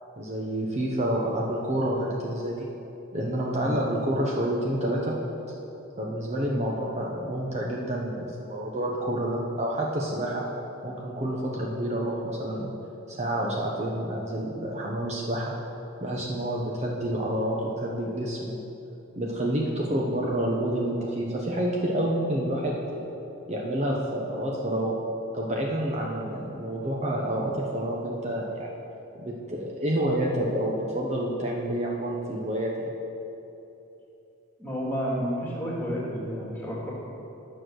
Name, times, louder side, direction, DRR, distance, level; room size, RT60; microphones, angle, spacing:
voice 1, 0.2-2.7 3.1-5.2 6.0-10.4 10.8-12.7 13.1-15.5 16.0-18.6 19.2-23.1 23.5-25.0 25.3-28.8 29.1-32.7, right 1 dB, 35° right, -2 dB, 0.9 m, -28 dB
voice 2, 34.6-36.9, equal, 10° left, -5 dB, 2.3 m, -31 dB
10.5 x 6.6 x 6.2 m, 3.0 s
head